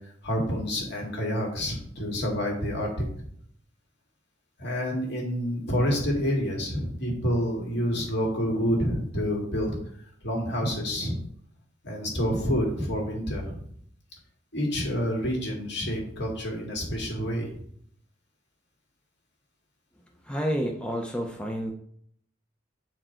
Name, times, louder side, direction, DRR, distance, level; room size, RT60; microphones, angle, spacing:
voice 1, 0.2-3.1 4.6-9.7 10.2-11.2 11.8-13.7 14.5-17.5, equal, 60° left, 0 dB, 2.0 m, -28 dB
voice 2, 20.2-21.7, equal, 5° left, 1 dB, 0.6 m, -29 dB
7.3 x 4.5 x 4.4 m, 0.65 s
head